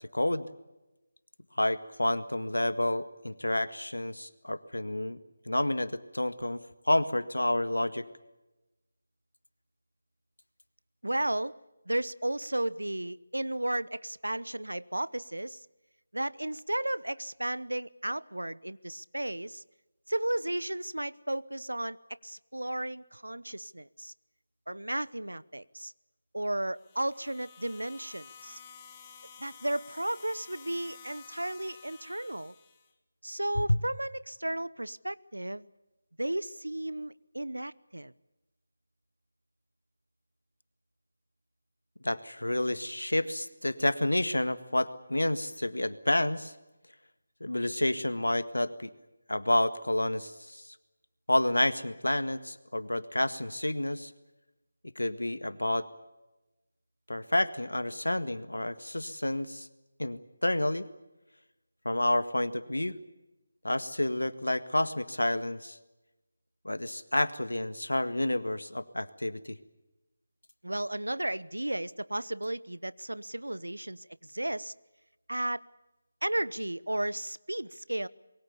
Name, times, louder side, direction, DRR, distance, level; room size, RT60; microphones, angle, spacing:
voice 1, 0.1-0.5 1.6-5.2 5.5-8.1 33.7-33.8 42.0-46.5 47.4-48.9 49.3-50.7 51.3-54.1 55.0-55.9 57.1-59.7 60.0-60.9 61.9-63.0 63.6-65.8 66.7-69.6, left 1 dB, 85° left, 1.8 m, -29 dB
voice 2, 11.0-11.6 11.9-15.7 16.1-19.6 20.1-22.0 22.2-24.1 24.7-25.9 26.3-28.6 29.4-32.5 33.2-35.7 36.2-38.1 70.6-74.7 75.3-75.6 76.2-78.1, right 1 dB, 90° right, 0.9 m, -34 dB
sound 1, 26.7-32.9, left 7 dB, 15° left, 2.5 m, -52 dB
26.0 x 22.5 x 7.0 m
figure-of-eight pair, 160°, 0 cm